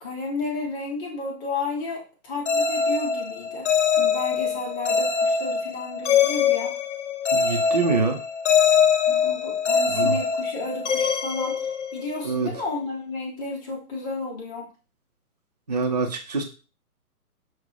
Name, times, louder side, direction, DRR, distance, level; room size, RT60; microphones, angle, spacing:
voice 1, 0.0-3.7 4.0-6.8 9.1-14.7, left 3 dB, 10° left, -2 dB, 0.8 m, -32 dB
sound 1, 2.5-12.3, left 6 dB, 50° left, 0.9 m, -23 dB
voice 2, 7.3-8.2 9.9-10.1 12.2-12.5 15.7-16.4, right 4 dB, 30° right, 4 dB, 0.4 m, -25 dB
6.1 x 2.1 x 3.8 m, 0.34 s
figure-of-eight pair, 135°, 45 cm